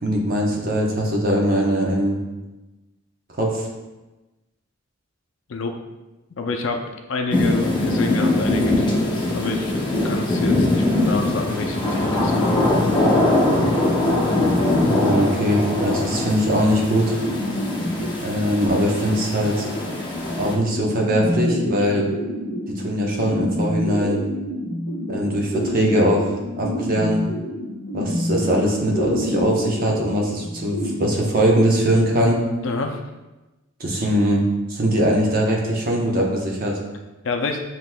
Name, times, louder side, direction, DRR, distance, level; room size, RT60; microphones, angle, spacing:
voice 1, 0.0-2.2 3.3-3.7 14.7-17.2 18.2-19.7 20.4-22.0 22.8-24.2 25.1-27.2 27.9-32.4 33.8-36.8, equal, 45° right, -1 dB, 0.9 m, -21 dB
voice 2, 6.4-6.8 7.1-9.7 10.0-12.7 16.0-16.2 21.8-22.0 32.6-33.0 37.2-37.6, left 3 dB, 65° left, 4 dB, 0.5 m, -28 dB
sound 1, 7.3-20.5, left 2 dB, 20° left, 0.8 m, -22 dB
sound 2, 17.2-30.9, equal, 80° right, 1.3 m, -28 dB
7.4 x 3.0 x 2.2 m, 1.1 s
head